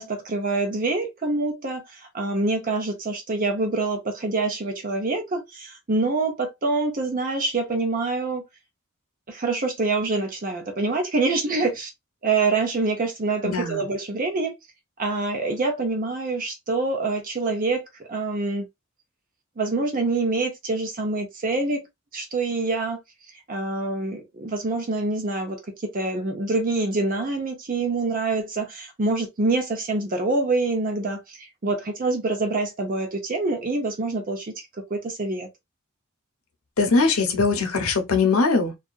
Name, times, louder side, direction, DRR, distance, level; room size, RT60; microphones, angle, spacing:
voice 1, 0.0-8.4 9.3-11.9 12.2-14.5 15.0-18.7 19.6-21.9 22.1-23.0 23.5-34.5 34.9-35.5, right 3 dB, 40° right, 0.6 m, -26 dB
voice 2, 13.4-13.9 36.8-38.8, left 4 dB, 90° left, 0.8 m, -21 dB
2.7 x 2.3 x 2.3 m
head